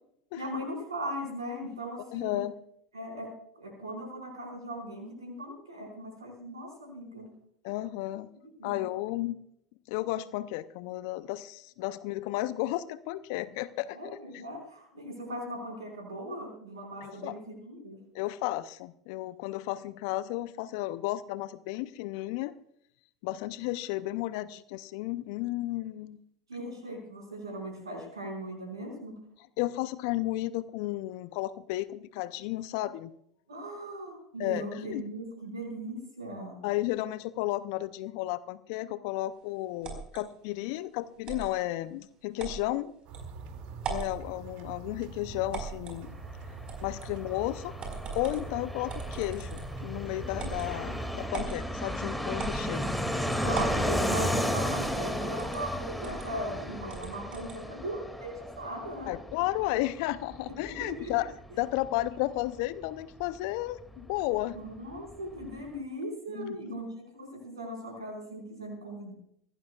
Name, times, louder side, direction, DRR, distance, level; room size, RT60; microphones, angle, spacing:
voice 1, 0.3-2.4 2.9-7.3 8.6-8.8 13.9-18.0 26.5-29.1 33.5-36.6 53.4-59.1 60.6-61.1 64.5-66.9 67.1-69.1, right 1 dB, 85° right, 1 dB, 5.2 m, -39 dB
voice 2, 2.1-2.6 7.6-8.3 8.6-9.4 9.9-14.1 17.0-17.4 18.1-22.6 23.2-26.2 29.6-33.1 34.4-35.0 36.6-42.9 43.9-46.2 46.8-47.7 48.1-52.9 53.4-53.5 54.0-54.1 59.1-64.6 66.3-66.8, left 16 dB, 60° left, 16 dB, 0.6 m, -33 dB
sound 1, 39.8-40.2 41.2-41.5 42.4-42.6 43.1-43.2 43.8-44.1 45.5-46.0 46.7-47.1 47.8-48.5 48.9-49.8 50.4-50.7 51.3-51.6 52.4-53.0 53.5-53.8 54.8-55.0 55.4-55.6 56.0-56.3 56.9-57.6, right 5 dB, 40° right, 4.8 m, -38 dB
sound 2, 43.1-51.3, right 4 dB, 55° right, 2.4 m, -44 dB
Fixed-wing aircraft airplane, 46.0-64.4 64.7-64.8 65.0-65.7, equal, ahead, 2.4 m, -34 dB
23.0 x 16.5 x 2.4 m, 0.71 s
hypercardioid pair, 80°, 2 cm